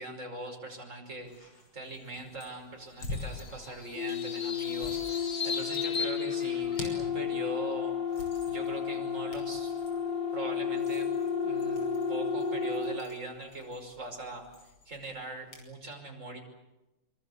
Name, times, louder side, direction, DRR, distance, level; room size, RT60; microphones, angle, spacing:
voice 1, 0.0-8.0 8.5-9.7 10.3-11.1 11.4-14.4 14.9-16.4, right 2 dB, 35° right, 2 dB, 5.9 m, -41 dB
sound 1, 1.2-15.7, left 2 dB, 80° left, 6.8 m, -48 dB
sound 2, 3.1-7.1, left 5 dB, 35° left, 1.4 m, -38 dB
sound 3, 4.0-13.0, left 6 dB, 65° left, 4.9 m, -32 dB
25.0 x 25.0 x 8.2 m, 1.0 s
omnidirectional pair, 2.3 m